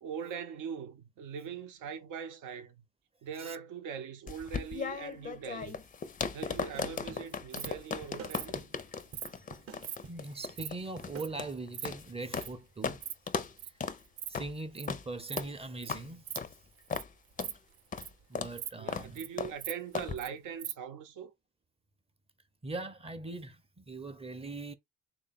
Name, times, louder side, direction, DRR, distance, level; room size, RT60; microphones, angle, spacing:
voice 1, 0.0-2.8 3.2-5.8 6.3-8.6 18.7-21.3, right 7 dB, 90° right, 0.8 m, -41 dB
sound 1, 4.3-12.5 12.8-13.0 13.3-13.5 13.8-14.0 14.3-14.5 14.9-15.0 15.4-15.5 15.9-16.0 16.4-16.5 16.9-17.1 17.4-17.5 17.9-18.1 18.4-18.5 18.9-19.1 19.4-19.5 19.9-20.1, left 6 dB, 25° left, 0.4 m, -37 dB
sound 2, 5.6-11.5, right 5 dB, 50° right, 0.8 m, -51 dB
Insect, 7.3-7.7 8.3-8.5 9.1-9.3 9.8-10.0 10.3-10.7 11.2-11.3 11.5-11.9 12.4-12.5 12.9-13.1 13.4-13.7 14.0-14.3 14.5-14.9 15.3-15.5 15.8-15.9 16.2-16.4 16.8-17.0 17.3-18.2 18.6-18.7 19.0-19.3 19.6-20.3 20.6-20.7, right 11 dB, 70° right, 0.5 m, -40 dB
voice 2, 10.1-13.0 14.3-16.2 18.3-19.3 22.6-24.7, right 2 dB, 20° right, 0.5 m, -41 dB
3.5 x 2.3 x 4.0 m
cardioid pair, 90°, 30 cm